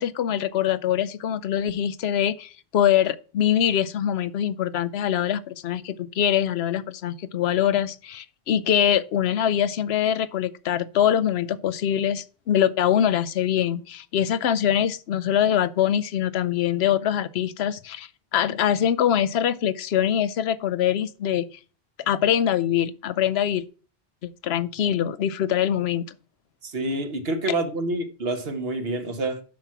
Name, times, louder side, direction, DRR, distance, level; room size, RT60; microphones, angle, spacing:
voice 1, 0.0-21.5 22.1-23.6 24.2-26.0, left 10 dB, 75° left, 0.8 m, -23 dB
voice 2, 26.6-29.4, right 2 dB, 70° right, 1.5 m, -27 dB
7.4 x 5.9 x 5.8 m
omnidirectional pair, 1.1 m